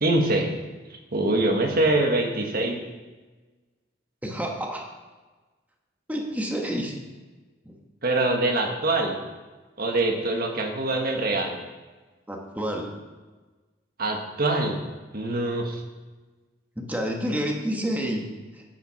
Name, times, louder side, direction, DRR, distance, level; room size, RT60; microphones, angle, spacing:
voice 1, 0.0-0.5 0.9-2.8 8.0-9.2 9.8-11.6 14.0-14.8 15.1-15.8, right 2 dB, 50° right, 3 dB, 1.3 m, -24 dB
voice 2, 4.2-4.9 6.1-6.9 7.6-7.8 12.3-12.9 16.8-18.2 18.5-18.6, equal, 10° right, 1 dB, 1.3 m, -29 dB
9.3 x 8.8 x 5.8 m, 1.3 s
head